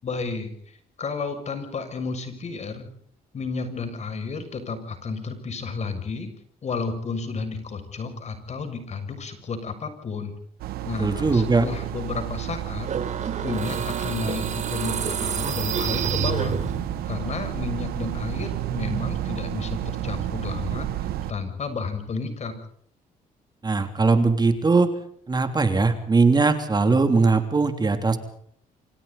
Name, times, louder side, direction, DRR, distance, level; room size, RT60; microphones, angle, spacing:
voice 1, 0.0-2.9 3.3-6.3 6.6-10.3 10.9-12.9 13.4-16.6 17.0-22.5, left 4 dB, 45° left, 8 dB, 6.8 m, -32 dB
sound 1, 10.6-21.3, right 13 dB, 85° right, 1.6 m, -31 dB
voice 2, 11.0-11.7 23.6-24.9 25.3-28.2, right 3 dB, 25° right, 7 dB, 3.1 m, -20 dB
sound 2, 12.8-17.1, right 7 dB, 50° right, 3.9 m, -29 dB
28.0 x 26.5 x 4.1 m, 0.64 s
cardioid pair, 95°, 16 cm